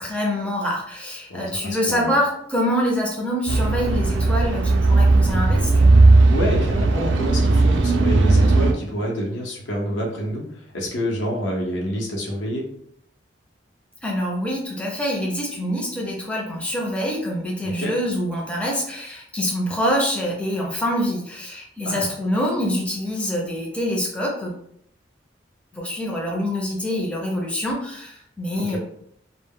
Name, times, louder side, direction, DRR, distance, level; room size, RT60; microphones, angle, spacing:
voice 1, 0.0-6.0 14.0-24.5 25.7-28.8, equal, 5° left, -3 dB, 0.4 m, -25 dB
voice 2, 1.3-2.1 6.3-12.6 17.6-17.9 21.8-22.1 28.5-28.8, equal, 80° left, -2 dB, 0.7 m, -27 dB
sound 1, 3.5-8.7, right 2 dB, 80° right, 0.4 m, -16 dB
2.1 x 2.0 x 3.5 m, 0.71 s
head